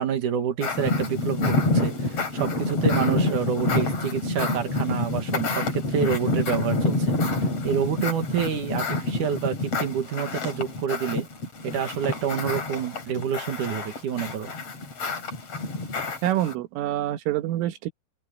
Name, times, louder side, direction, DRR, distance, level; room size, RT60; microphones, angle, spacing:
voice 1, 0.0-11.3 11.6-14.5, right 8 dB, 55° right, 2.4 m, -28 dB
sound 1, 0.6-16.5, left 2 dB, 35° left, 4.4 m, -27 dB
voice 2, 16.2-17.9, right 13 dB, 85° right, 3.9 m, -26 dB
open air
omnidirectional pair, 5.6 m